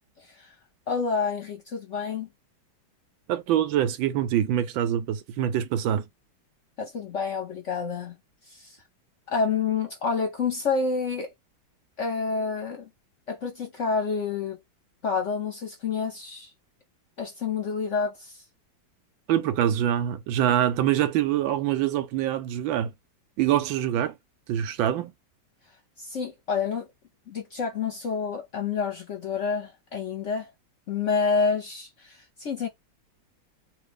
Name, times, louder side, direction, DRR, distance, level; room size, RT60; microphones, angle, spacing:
voice 1, 0.2-0.5 0.9-2.3 6.8-8.2 8.5-8.8 9.3-11.3 12.0-12.9 13.3-14.6 15.0-16.5 17.2-18.4 26.0-26.9 27.3-30.5 30.9-32.7, left 5 dB, 55° left, 0.8 m, -28 dB
voice 2, 3.3-6.1 19.3-22.9 23.4-24.2 24.5-25.1, right 11 dB, 85° right, 1.4 m, -25 dB
3.3 x 2.6 x 3.4 m
omnidirectional pair, 2.1 m